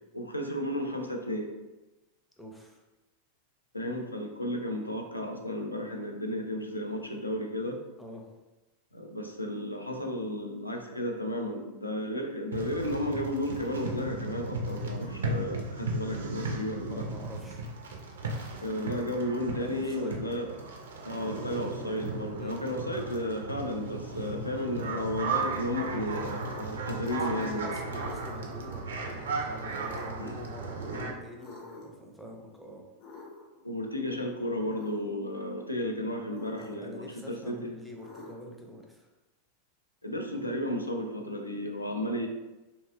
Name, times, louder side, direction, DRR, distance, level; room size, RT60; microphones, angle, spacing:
voice 1, 0.1-1.5 3.7-7.8 8.9-17.1 18.6-20.5 21.0-27.8 30.2-30.4 33.6-37.7 40.0-42.3, left 1 dB, 85° left, 2 dB, 0.3 m, -33 dB
voice 2, 2.4-2.8 8.0-8.3 16.8-17.6 19.6-20.2 22.3-22.6 27.1-32.8 36.6-39.1, equal, ahead, 0 dB, 0.4 m, -45 dB
sound 1, 12.5-31.1, right 3 dB, 65° right, 0.4 m, -36 dB
sound 2, 26.2-26.9 27.9-28.6 29.6-30.3 31.4-32.1 33.0-33.6 34.6-35.1 36.3-37.0 38.0-38.6, left 3 dB, 40° left, 0.6 m, -48 dB
2.6 x 2.3 x 2.4 m, 1.1 s
figure-of-eight pair, 90°, 0 cm